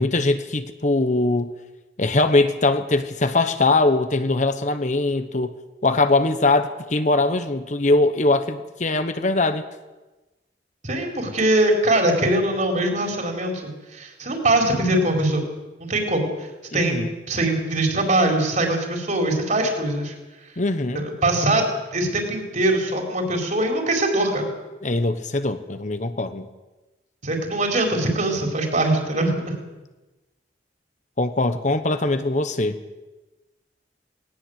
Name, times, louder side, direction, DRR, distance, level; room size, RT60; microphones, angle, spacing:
voice 1, 0.0-1.5 2.0-5.5 5.8-9.6 16.7-17.1 20.6-21.0 24.8-26.5 31.2-32.8, left 2 dB, 45° left, 10 dB, 1.1 m, -21 dB
voice 2, 10.8-15.4 15.8-20.1 20.9-21.6 21.9-24.5 27.2-29.5, right 1 dB, 45° right, 2 dB, 4.5 m, -22 dB
18.5 x 18.5 x 8.1 m, 1.1 s
head